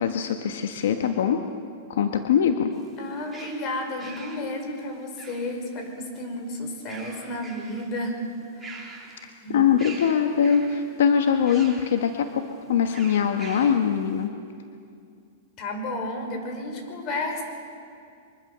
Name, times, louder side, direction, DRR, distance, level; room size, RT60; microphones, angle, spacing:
voice 1, 0.0-1.4 1.9-2.7 9.5-12.4 12.7-14.3, left 8 dB, 75° left, 5 dB, 1.3 m, -22 dB
sound 1, 2.7-5.8 6.7-8.0 8.3-9.4 9.8-10.9 11.5-12.0 12.9-13.9, right 3 dB, 10° right, 3.7 m, -44 dB
voice 2, 3.0-8.2 8.5-8.9 9.4-9.7 15.6-17.4, left 1 dB, 40° left, 4 dB, 5.0 m, -32 dB
24.0 x 22.5 x 6.8 m, 2.4 s
hypercardioid pair, 140°, 0 cm